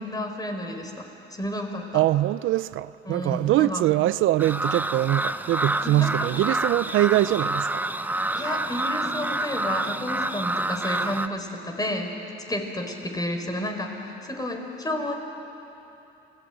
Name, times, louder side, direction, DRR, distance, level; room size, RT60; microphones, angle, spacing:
voice 1, 0.0-2.0 3.0-3.9 5.8-6.3 6.9-7.0 8.3-12.2 12.5-15.1, left 1 dB, 20° left, 4.3 m, -31 dB
voice 2, 1.9-7.9, right 15 dB, 80° right, 0.5 m, -23 dB
sound 1, 4.4-11.3, right 2 dB, 10° right, 0.8 m, -28 dB
29.0 x 19.5 x 9.1 m
cardioid pair, 90°, 20 cm